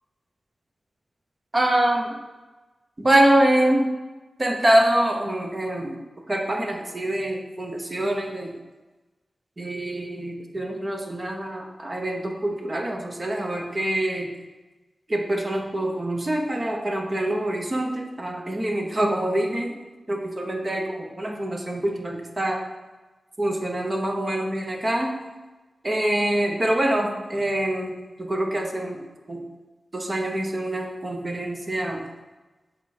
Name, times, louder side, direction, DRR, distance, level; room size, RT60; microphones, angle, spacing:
voice 1, 1.5-2.1 3.0-3.9 4.4-6.0 6.3-8.5 9.6-14.3 15.1-19.7 20.1-22.6 23.4-25.2 25.8-27.9 28.2-29.4 29.9-32.1, right 1 dB, 30° right, 2 dB, 1.0 m, -25 dB
7.0 x 4.5 x 4.3 m, 1.2 s
wide cardioid pair, 100°, 0 cm